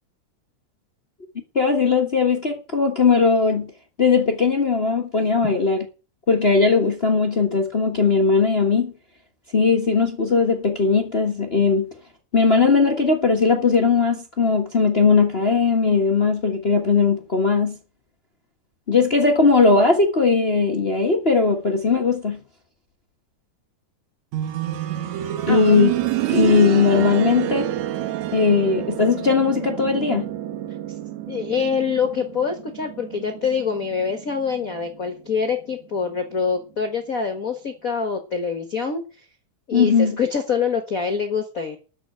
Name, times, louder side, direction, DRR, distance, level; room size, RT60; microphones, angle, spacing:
voice 1, 1.5-3.7 4.0-5.8 6.3-8.9 9.5-11.9 12.3-17.8 18.9-22.4 25.5-25.9 26.3-27.7 28.3-30.3 39.7-40.2, left 4 dB, 85° left, 0.5 m, -19 dB
sound 1, 24.3-35.1 36.5-36.6, right 11 dB, 70° right, 2.2 m, -28 dB
voice 2, 25.5-25.8 31.3-39.0 39.7-41.8, left 6 dB, 45° left, 1.1 m, -25 dB
13.0 x 6.1 x 8.8 m
omnidirectional pair, 3.7 m